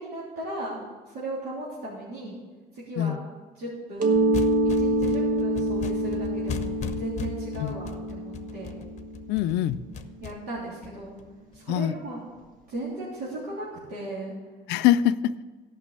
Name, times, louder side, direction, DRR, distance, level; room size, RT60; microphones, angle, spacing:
voice 1, 0.0-2.4 2.7-3.2 3.5-4.3 4.8-8.8 10.2-11.1 11.5-12.2 12.7-14.3, right 1 dB, 70° right, -8 dB, 3.4 m, -36 dB
Mallet percussion, 4.0-9.5, right 1 dB, 55° right, 1.1 m, -26 dB
sound 1, 4.1-11.6, left 7 dB, 45° left, 0.8 m, -38 dB
voice 2, 9.3-9.8 11.7-11.9 14.7-15.4, left 11 dB, 90° left, 14 dB, 0.4 m, -23 dB
13.5 x 6.0 x 6.7 m, 1.3 s
cardioid pair, 110°, 17 cm